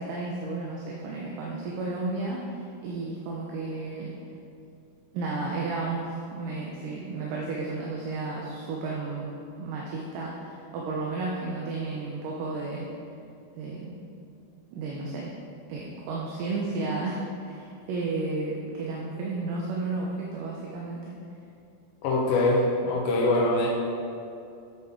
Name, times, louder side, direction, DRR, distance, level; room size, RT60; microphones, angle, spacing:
voice 1, 0.0-4.1 5.1-9.3 9.6-12.9 13.6-14.0 14.7-15.3 15.7-21.1, right 3 dB, 75° right, -3 dB, 2.3 m, -32 dB
voice 2, 22.0-23.7, left 2 dB, 80° left, -3 dB, 2.5 m, -23 dB
8.8 x 7.8 x 3.7 m, 2.6 s
omnidirectional pair, 4.2 m